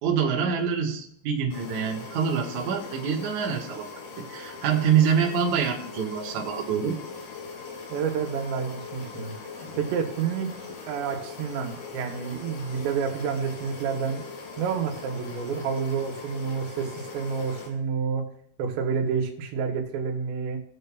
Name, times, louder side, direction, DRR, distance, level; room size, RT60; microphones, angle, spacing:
voice 1, 0.0-3.9 4.3-7.0, right 7 dB, 60° right, -1 dB, 2.2 m, -25 dB
sound 1, 1.5-17.7, left 4 dB, 70° left, 4.1 m, -40 dB
voice 2, 7.9-9.3 9.7-10.5 10.9-14.2 14.6-18.2 18.6-20.6, right 6 dB, 85° right, 4 dB, 3.3 m, -29 dB
20.0 x 6.7 x 2.3 m, 0.70 s
omnidirectional pair, 4.9 m